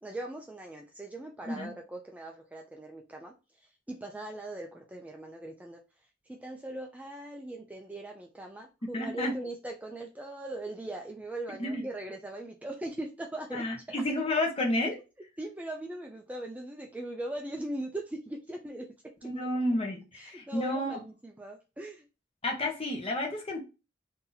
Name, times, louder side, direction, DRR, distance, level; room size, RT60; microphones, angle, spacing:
voice 1, 0.0-3.3 3.9-5.8 6.4-13.6 15.4-18.9 19.2-19.5 20.2-22.1, right 1 dB, 10° right, 0.4 m, -40 dB
voice 2, 8.9-9.3 11.6-11.8 13.5-15.0 19.2-21.0 22.4-23.6, left 1 dB, 30° left, 1.0 m, -31 dB
2.8 x 2.7 x 3.8 m
head